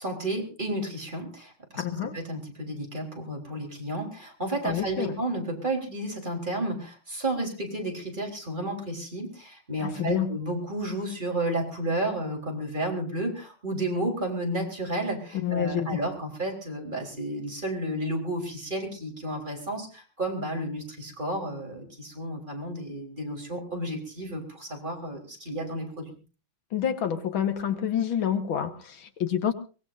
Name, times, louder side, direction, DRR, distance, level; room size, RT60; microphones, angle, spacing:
voice 1, 0.0-1.8 2.1-26.1, right 1 dB, 25° right, 1 dB, 4.1 m, -32 dB
voice 2, 1.8-2.2 4.6-5.2 9.8-10.3 15.4-16.0 26.7-29.5, left 9 dB, 80° left, 8 dB, 2.2 m, -28 dB
23.5 x 19.0 x 2.6 m, 0.35 s
omnidirectional pair, 2.2 m